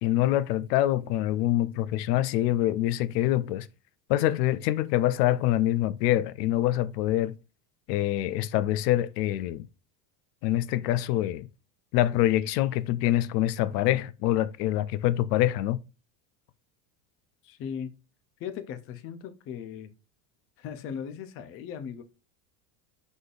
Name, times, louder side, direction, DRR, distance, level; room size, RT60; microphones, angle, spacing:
voice 1, 0.0-3.7 4.1-7.4 7.9-9.7 10.4-11.5 11.9-15.8, left 14 dB, 80° left, 0.6 m, -25 dB
voice 2, 17.4-17.9 18.4-19.9 20.6-22.0, left 7 dB, 30° left, 0.4 m, -38 dB
5.0 x 4.2 x 2.4 m
supercardioid pair, 140°, 47 cm